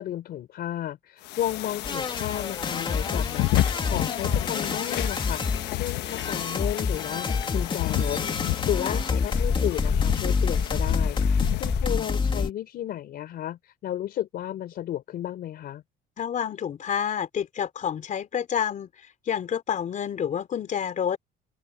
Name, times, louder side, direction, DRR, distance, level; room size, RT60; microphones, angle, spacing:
voice 1, 0.0-8.2 8.7-15.8, left 12 dB, 65° left, 4.1 m, -33 dB
sound 1, 1.2-11.9, left 17 dB, 90° left, 1.2 m, -31 dB
sound 2, 1.8-12.5, left 5 dB, 30° left, 2.7 m, -27 dB
voice 2, 16.2-18.9 19.3-21.2, left 8 dB, 50° left, 3.6 m, -28 dB
open air
cardioid pair, 110°, 17 cm